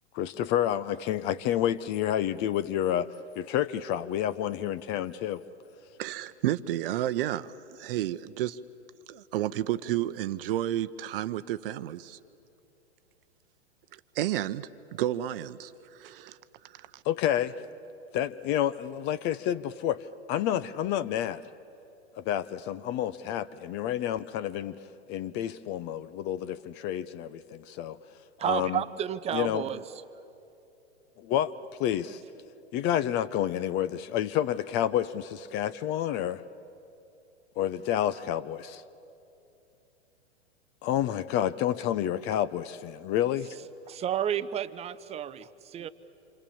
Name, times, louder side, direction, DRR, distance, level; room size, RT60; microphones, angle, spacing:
voice 1, 0.1-3.1 3.4-5.4 17.1-17.6 18.1-21.4 22.2-24.8 25.1-28.0 28.4-28.8 29.3-29.6 31.2-31.5 31.8-32.2 32.7-36.4 37.6-38.8 40.8-43.5, left 11 dB, 30° left, 0.6 m, -29 dB
voice 2, 6.0-8.6 9.1-12.2 13.9-16.4 16.7-17.0, right 13 dB, 55° right, 0.8 m, -31 dB
voice 3, 28.4-29.8 43.9-45.9, right 10 dB, 20° right, 0.7 m, -31 dB
27.5 x 25.5 x 7.2 m
hypercardioid pair, 110°, 34 cm